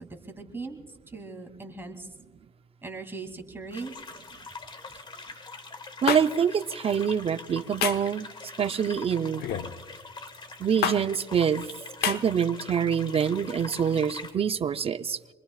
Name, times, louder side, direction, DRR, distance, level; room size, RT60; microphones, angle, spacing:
voice 1, 0.0-2.1 2.8-3.9, right 3 dB, 15° right, 3 dB, 2.6 m, -39 dB
sound 1, 3.7-14.3, left 4 dB, 30° left, 1.8 m, -43 dB
voice 2, 6.0-8.3 8.6-9.5 10.6-11.7 12.0-15.2, right 7 dB, 35° right, 11 dB, 0.5 m, -25 dB
sound 2, 6.1-6.2 7.8-8.1 9.4-9.7 10.8-11.0 12.0-12.2, left 9 dB, 70° left, 1.0 m, -26 dB
27.0 x 21.5 x 2.4 m, 1.3 s
cardioid pair, 110°, 17 cm